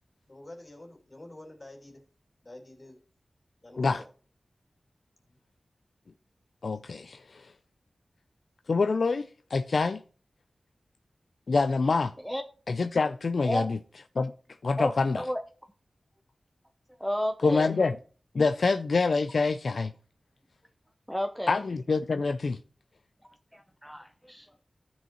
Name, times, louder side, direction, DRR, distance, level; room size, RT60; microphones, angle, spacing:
voice 1, 0.3-2.0 2.4-3.0 3.6-4.1 5.2-5.4, left 1 dB, 40° left, 2.6 m, -48 dB
voice 2, 6.6-7.5 8.7-10.0 11.5-12.1 12.7-13.8 14.2-14.3 14.6-15.2 17.4-18.0 18.3-19.9 21.5-22.6, left 4 dB, 70° left, 0.4 m, -26 dB
voice 3, 14.8-15.4 17.0-17.8 21.1-21.6 23.2-24.5, equal, ahead, 0.6 m, -32 dB
15.0 x 5.4 x 2.9 m
wide cardioid pair, 80°, 0 cm